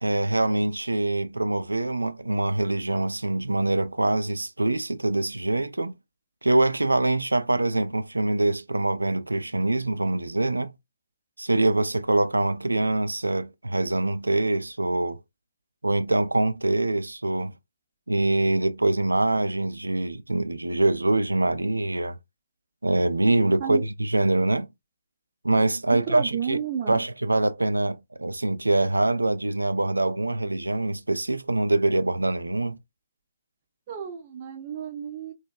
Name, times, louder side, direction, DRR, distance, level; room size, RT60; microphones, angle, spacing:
voice 1, 0.0-5.9 6.4-10.7 11.4-15.2 15.8-17.5 18.1-22.2 22.8-24.7 25.4-26.6 26.9-32.8, right 2 dB, 75° right, 0.3 m, -24 dB
voice 2, 25.9-27.0 33.9-35.3, right 8 dB, 35° right, 0.6 m, -32 dB
4.3 x 2.2 x 2.3 m
figure-of-eight pair, 130°, 0 cm